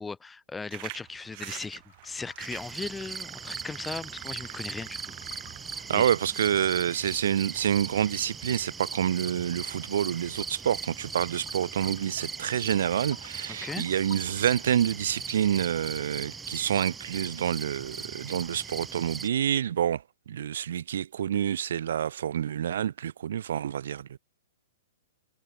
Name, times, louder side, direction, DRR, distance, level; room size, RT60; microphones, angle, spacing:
voice 1, 0.0-5.1 5.9-6.1 13.5-13.9, left 4 dB, 10° left, 0.6 m, -38 dB
sound 1, 0.7-6.8, right 25 dB, 40° right, 1.5 m, -45 dB
sound 2, 1.5-3.5 3.8-7.1 7.8-8.7 9.1-16.0, left 13 dB, 55° left, 5.9 m, -56 dB
sound 3, 2.4-19.3, right 5 dB, 10° right, 2.2 m, -39 dB
voice 2, 5.7-24.2, right 9 dB, 75° right, 1.2 m, -28 dB
hypercardioid pair, 155°, 0 cm